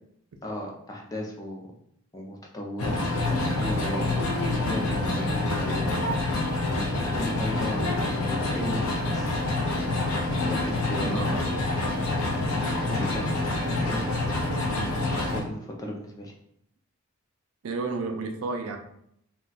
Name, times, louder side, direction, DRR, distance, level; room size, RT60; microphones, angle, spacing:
voice 1, 0.4-1.7 2.1-6.4 6.7-9.4 10.3-11.4 12.2-16.3, equal, 15° left, -1 dB, 0.4 m, -36 dB
sound 1, 2.8-15.4, left 2 dB, 75° left, 0.6 m, -27 dB
voice 2, 11.0-11.6 12.5-12.6 14.7-14.9 17.6-18.8, right 3 dB, 70° right, 4 dB, 0.4 m, -32 dB
2.3 x 2.3 x 3.9 m, 0.74 s
head